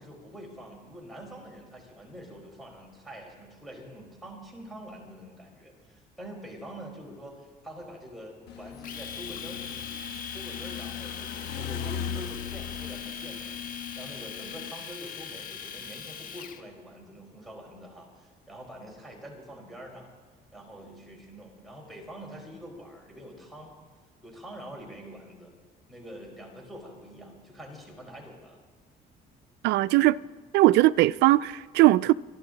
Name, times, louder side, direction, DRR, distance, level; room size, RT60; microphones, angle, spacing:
voice 1, 0.0-9.6 10.2-13.6 13.9-20.1 20.5-23.7 24.2-25.5 25.9-28.6, equal, ahead, 4.7 m, -45 dB
sound 1, 8.5-14.7, left 8 dB, 80° left, 1.0 m, -38 dB
Domestic sounds home sounds, 8.8-16.6, left 6 dB, 55° left, 1.2 m, -40 dB
voice 2, 29.6-30.2 30.5-32.1, right 17 dB, 85° right, 0.4 m, -20 dB
28.5 x 11.5 x 4.0 m
cardioid pair, 110°, 17 cm